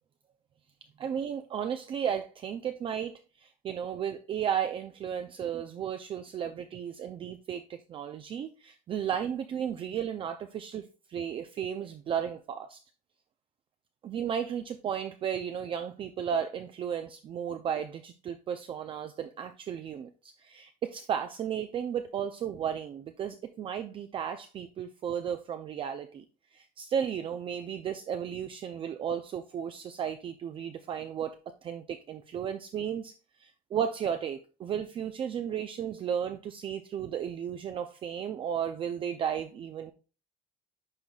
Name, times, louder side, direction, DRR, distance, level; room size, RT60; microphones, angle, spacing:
voice 1, 1.0-12.8 14.0-26.2 26.5-31.4 31.6-33.1 33.4-39.9, right 8 dB, 35° right, 7 dB, 0.4 m, -34 dB
10.5 x 3.9 x 2.3 m, 0.34 s
cardioid pair, 140°, 16 cm